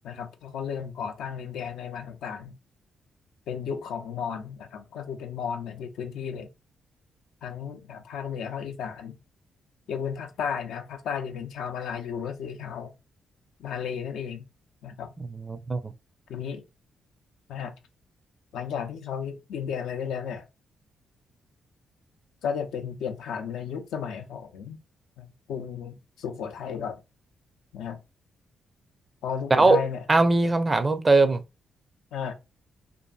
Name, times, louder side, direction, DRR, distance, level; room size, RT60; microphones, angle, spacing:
voice 1, 0.0-2.6 3.5-6.5 7.4-9.2 9.9-12.9 13.6-14.4 14.8-15.1 16.3-16.6 17.5-17.7 18.5-20.5 22.4-24.8 25.2-27.0 27.7-28.0 29.2-30.0 32.1-32.3, left 7 dB, 75° left, 0.4 m, -34 dB
voice 2, 15.2-15.9 29.5-31.4, right 3 dB, 35° right, 0.5 m, -21 dB
2.6 x 2.5 x 2.3 m
hypercardioid pair, 45°, 0 cm